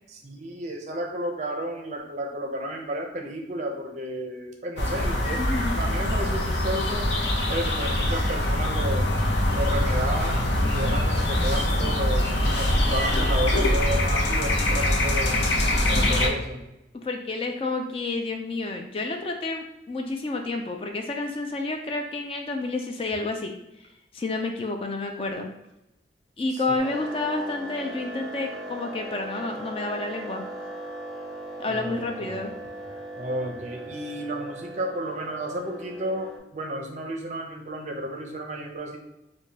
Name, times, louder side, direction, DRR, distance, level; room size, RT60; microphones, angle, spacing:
voice 1, 0.1-5.4 5.7-7.1 7.5-9.1 9.5-15.5 15.9-16.6 26.7-26.8 31.7-32.4 33.1-39.0, right 1 dB, 40° right, 2 dB, 0.5 m, -32 dB
sound 1, 4.8-16.3, left 1 dB, 80° left, 0.6 m, -23 dB
voice 2, 5.4-5.8 15.7-16.4 17.0-23.5 24.1-25.5 26.4-30.4 31.6-32.5, left 3 dB, 30° left, 3 dB, 0.3 m, -30 dB
sound 2, 26.8-36.4, right 1 dB, ahead, 0.8 m, -38 dB
4.7 x 2.2 x 2.7 m, 0.91 s
head